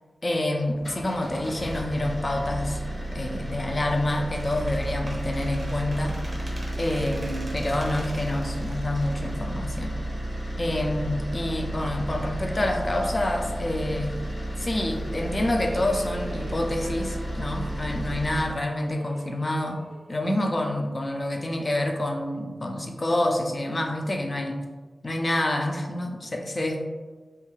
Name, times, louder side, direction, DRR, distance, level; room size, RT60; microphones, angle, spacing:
voice 1, 0.2-2.8 3.1-6.2 6.8-10.0 10.6-14.2 14.6-19.8 20.1-24.7 25.0-26.8, left 1 dB, 35° left, 2 dB, 0.4 m, -27 dB
sound 1, 0.7-18.6, right 1 dB, 65° left, 1.1 m, -32 dB
Squeak, 4.3-10.1, right 1 dB, 25° right, 0.7 m, -43 dB
sound 2, 12.4-14.1 14.8-20.9, right 1 dB, 65° right, 0.3 m, -45 dB
2.5 x 2.3 x 3.0 m, 1.4 s
wide cardioid pair, 110°, 0 cm